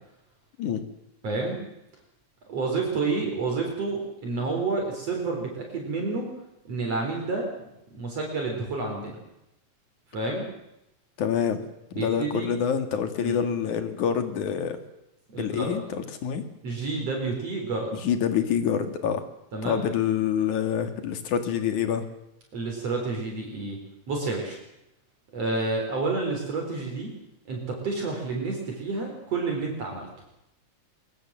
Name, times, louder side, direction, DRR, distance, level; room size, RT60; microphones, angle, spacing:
voice 1, 1.2-1.6 2.5-6.3 6.7-7.5 7.9-9.2 10.1-10.5 11.9-12.5 13.2-13.4 15.3-15.8 16.6-17.9 19.5-19.9 22.5-23.8 24.1-24.6 25.3-27.1 27.5-30.1, right 3 dB, 55° right, 1 dB, 5.3 m, -29 dB
voice 2, 11.2-11.6 11.9-14.8 15.4-16.4 17.9-19.2 19.7-22.0, left 8 dB, 90° left, 8 dB, 3.6 m, -26 dB
22.0 x 22.0 x 7.6 m, 0.85 s
omnidirectional pair, 3.3 m